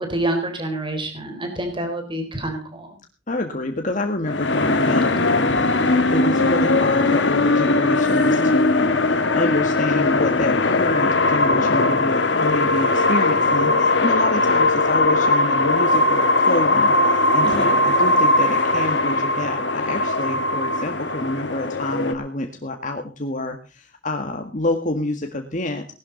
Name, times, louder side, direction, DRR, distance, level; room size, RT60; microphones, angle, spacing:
voice 1, 0.0-2.9 5.5-5.6 17.4-17.7, right 1 dB, 30° right, 5 dB, 4.3 m, -27 dB
voice 2, 3.3-25.9, left 1 dB, 45° left, 4 dB, 1.9 m, -27 dB
sound 1, 4.3-22.1, left 2 dB, 75° left, 2.0 m, -19 dB
19.0 x 12.5 x 4.1 m, 0.34 s
head